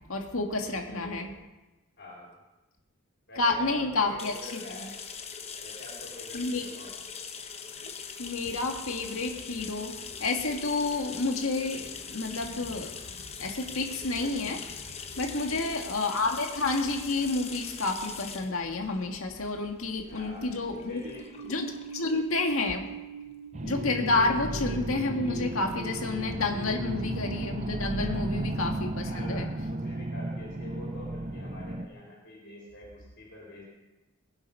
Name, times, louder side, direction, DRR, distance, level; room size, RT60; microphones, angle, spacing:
voice 1, 0.1-1.3 3.4-4.6 6.3-6.6 7.8-7.9 8.2-12.9 13.4-21.0 21.5-21.7 21.9-22.9 23.6-29.5, left 3 dB, 75° left, 3 dB, 1.9 m, -30 dB
voice 2, 0.6-1.4 2.0-2.3 3.3-5.0 5.6-7.1 15.4-15.7 20.1-21.3 22.0-22.2 29.1-33.6, left 1 dB, 50° left, -5 dB, 4.3 m, -46 dB
sound 1, 4.2-23.6, left 6 dB, 30° left, 0.9 m, -42 dB
sound 2, 20.1-27.2, right 3 dB, 70° right, 1.0 m, -43 dB
sound 3, 23.5-31.9, right 2 dB, 30° right, 0.7 m, -34 dB
21.0 x 8.0 x 5.5 m, 1.1 s
head